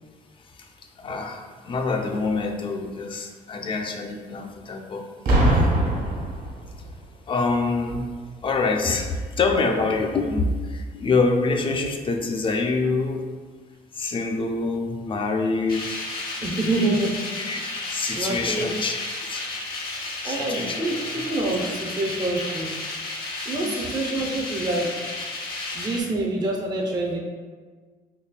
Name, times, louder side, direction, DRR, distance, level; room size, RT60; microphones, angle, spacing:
voice 1, 1.0-5.1 5.5-5.7 7.3-8.1 8.4-13.2 13.9-16.1 17.4-17.6 17.9-19.5 20.2-20.8 21.1-21.2 23.5-23.8, left 3 dB, 30° left, 4 dB, 0.4 m, -26 dB
Boom, 5.3-7.0 7.9-8.1, right 1 dB, 65° right, 1.4 m, -22 dB
sound 1, 15.7-26.0, left 2 dB, 60° left, 0.9 m, -32 dB
voice 2, 16.4-17.2 18.1-18.7 20.2-22.7 23.5-25.1 25.7-27.2, right 2 dB, 25° right, -1 dB, 0.6 m, -26 dB
4.0 x 3.1 x 2.2 m, 1.5 s
cardioid pair, 110°, 17 cm